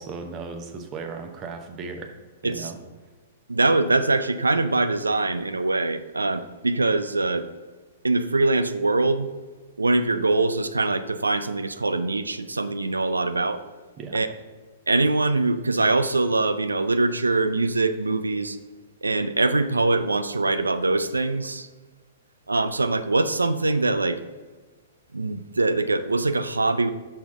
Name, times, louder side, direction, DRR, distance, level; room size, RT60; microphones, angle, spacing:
voice 1, 0.0-2.2 2.4-2.8 14.0-14.2, right 4 dB, 25° right, 4 dB, 0.9 m, -36 dB
voice 2, 3.5-7.5 8.0-9.3 9.8-13.6 14.1-14.3 14.9-18.6 19.0-21.7 22.5-24.2 25.1-26.9, right 2 dB, 80° right, 11 dB, 0.4 m, -23 dB
6.3 x 5.9 x 3.7 m, 1.3 s
figure-of-eight pair, 105°, 0 cm